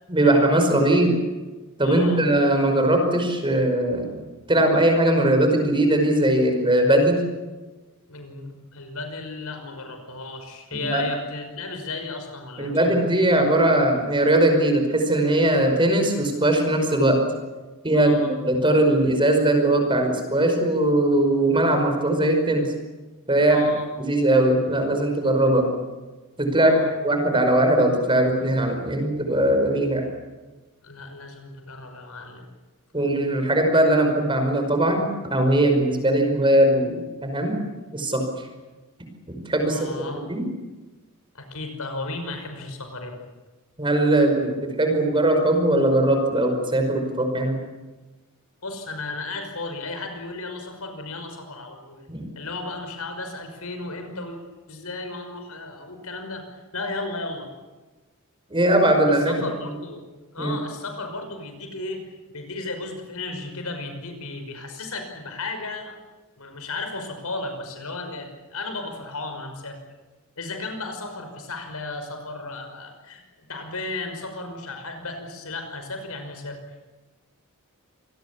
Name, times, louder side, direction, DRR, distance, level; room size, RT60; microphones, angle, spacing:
voice 1, 0.1-1.1 1.8-4.2 4.5-7.2 10.7-11.0 12.6-17.2 17.8-22.7 23.3-23.6 24.0-25.7 26.4-26.8 27.0-30.1 32.9-37.6 37.9-38.2 39.3-39.8 40.3-40.5 43.8-47.5 52.1-52.3 58.5-59.3 60.4-60.5, right 1 dB, 25° right, 4 dB, 5.3 m, -20 dB
voice 2, 1.8-2.3 8.1-13.0 17.9-18.3 23.5-23.9 26.5-26.9 30.8-32.4 39.6-40.2 41.3-43.3 48.6-52.0 52.4-54.4 54.7-57.5 59.1-66.0 66.4-69.8 70.4-76.6, left 2 dB, 75° left, 6 dB, 5.7 m, -34 dB
27.0 x 19.5 x 8.5 m, 1.2 s
head